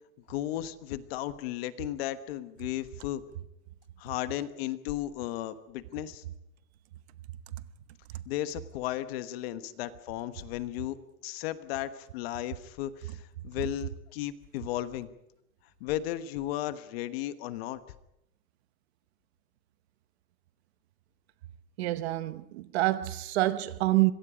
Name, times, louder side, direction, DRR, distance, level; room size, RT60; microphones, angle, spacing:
voice 1, 0.3-3.2 4.0-6.2 8.2-15.1 15.8-17.8, left 13 dB, 45° left, 1.3 m, -35 dB
voice 2, 21.8-24.1, right 17 dB, 45° right, 1.0 m, -27 dB
26.0 x 22.5 x 5.1 m
supercardioid pair, 170°, 43 cm